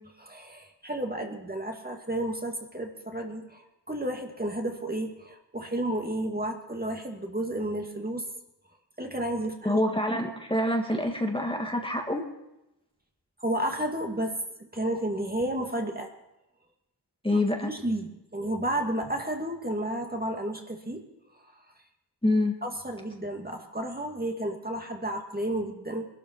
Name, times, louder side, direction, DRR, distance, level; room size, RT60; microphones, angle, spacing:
voice 1, 0.3-8.2 9.0-9.7 13.4-14.3 14.6-16.1 17.3-21.0 22.6-26.1, right 1 dB, 20° right, 3 dB, 2.2 m, -32 dB
voice 2, 9.6-12.2 17.2-17.7 22.2-22.6, left 1 dB, 10° left, 2 dB, 1.8 m, -26 dB
20.0 x 12.5 x 4.7 m, 0.92 s
cardioid pair, 50°, 42 cm